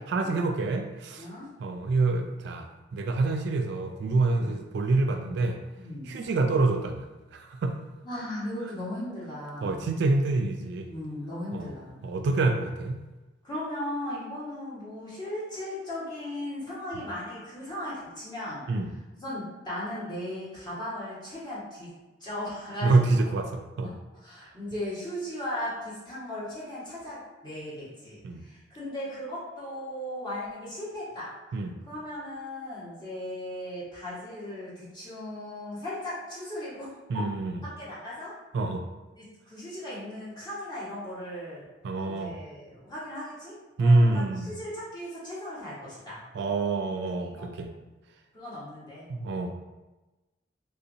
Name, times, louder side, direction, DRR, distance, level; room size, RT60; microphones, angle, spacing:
voice 1, 0.1-1.3 1.6-5.6 6.1-7.8 9.6-10.9 11.5-11.7 12.0-13.0 18.7-18.9 22.8-23.9 28.2-28.4 31.5-31.8 37.1-37.6 38.5-38.8 41.8-42.3 43.8-44.6 46.3-47.7 49.1-49.5, right 3 dB, 65° right, 5 dB, 0.3 m, -26 dB
voice 2, 1.2-1.5 4.4-4.5 5.8-6.1 8.0-9.9 10.9-12.0 13.4-18.7 19.1-21.9 22.2-23.3 23.8-31.3 31.9-37.2 37.6-38.3 39.2-41.7 41.9-46.2 47.2-47.5 48.3-49.1, left 1 dB, 25° left, -9 dB, 1.3 m, -37 dB
3.5 x 2.7 x 2.6 m, 1.1 s
head